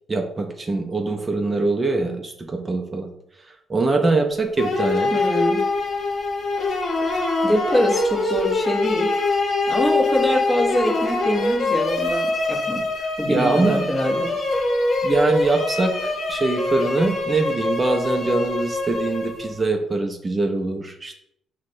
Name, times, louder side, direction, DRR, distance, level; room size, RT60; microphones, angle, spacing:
voice 1, 0.1-3.1 3.7-5.1 13.3-13.9 15.0-21.2, right 3 dB, 25° right, 3 dB, 0.5 m, -23 dB
sound 1, 4.6-19.6, left 2 dB, 55° left, 0.8 m, -24 dB
voice 2, 5.1-5.6 7.4-9.1 9.7-12.8 13.2-14.3, equal, ahead, -2 dB, 0.8 m, -23 dB
5.9 x 2.1 x 2.6 m, 0.76 s
cardioid pair, 90°, 0 cm